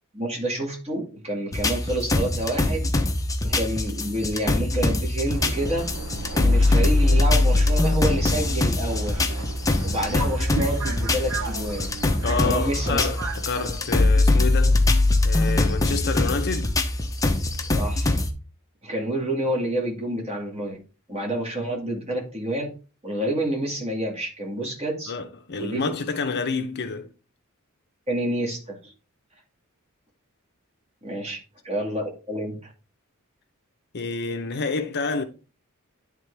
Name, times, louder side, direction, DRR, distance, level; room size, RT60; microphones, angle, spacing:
voice 1, 0.1-2.8 3.4-5.9 6.3-9.2 9.8-11.9 12.4-13.1 17.7-18.1 18.8-20.8 21.1-22.7 23.0-25.1 25.6-25.8 28.1-28.9 31.0-31.4 31.6-32.7, right 1 dB, 30° right, 2.1 m, -28 dB
sound 1, 1.5-18.3, left 2 dB, 15° left, 0.7 m, -22 dB
Subway metro underground, 5.3-13.7, right 3 dB, 75° right, 0.8 m, -35 dB
voice 2, 12.2-14.9 15.2-16.7 25.1-27.1 31.3-31.4 33.9-35.2, left 4 dB, 50° left, 0.7 m, -28 dB
10.5 x 3.6 x 3.3 m
head